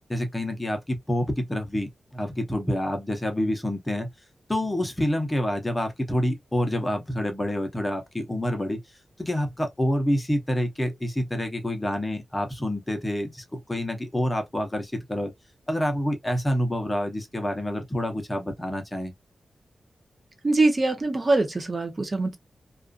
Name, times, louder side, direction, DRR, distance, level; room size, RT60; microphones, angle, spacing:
voice 1, 0.1-4.1 4.5-8.8 9.2-15.3 15.7-19.1, equal, 15° left, 0.7 m, -27 dB
voice 2, 20.4-22.4, right 2 dB, 35° right, 0.6 m, -23 dB
2.4 x 2.4 x 2.3 m
cardioid pair, 80°, 0 cm